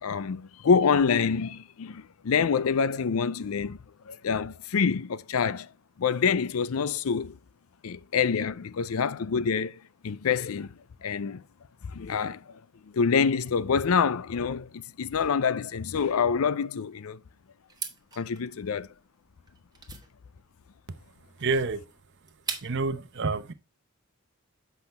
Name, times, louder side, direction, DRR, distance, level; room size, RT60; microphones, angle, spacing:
voice 1, 0.0-3.8 4.1-5.7 6.0-7.4 7.8-11.4 11.8-17.2 18.1-18.9, left 6 dB, 80° left, 0.5 m, -27 dB
sound 1, 17.7-23.0, right 5 dB, 20° right, 1.4 m, -41 dB
voice 2, 21.4-21.8 22.6-23.5, right 3 dB, 55° right, 0.8 m, -28 dB
8.1 x 5.9 x 3.3 m
head